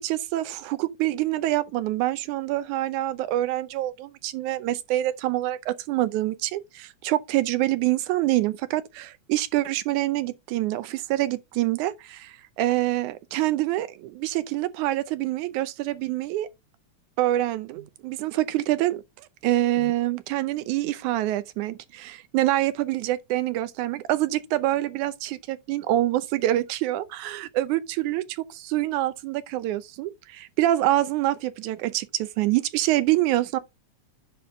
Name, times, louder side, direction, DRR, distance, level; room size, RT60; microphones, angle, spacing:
voice 1, 0.0-16.5 17.2-19.0 19.4-28.2 28.6-33.6, right 15 dB, 90° right, 2.2 m, -26 dB
10.5 x 4.4 x 3.7 m
omnidirectional pair, 3.3 m